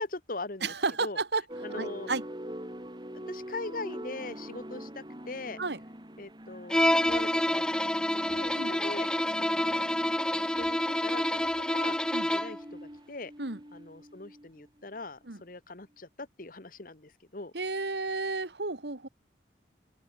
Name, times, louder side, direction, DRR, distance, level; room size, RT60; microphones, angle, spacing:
voice 1, 0.0-0.7 1.0-1.2 1.6-2.1 3.1-5.6 6.2-9.1 9.4-9.9 10.3-12.0 12.3-13.3 13.7-17.5, left 3 dB, 50° left, 1.4 m, -41 dB
voice 2, 0.6-1.4 1.7-2.2 5.6-5.8 8.6-8.7 12.1-12.3 13.4-13.6 15.3-15.4 17.5-19.1, right 3 dB, 70° right, 1.9 m, -32 dB
sound 1, 1.5-14.9, equal, 25° right, 5.2 m, -44 dB
Bowed string instrument, 6.7-12.6, left 1 dB, 5° left, 0.5 m, -28 dB
head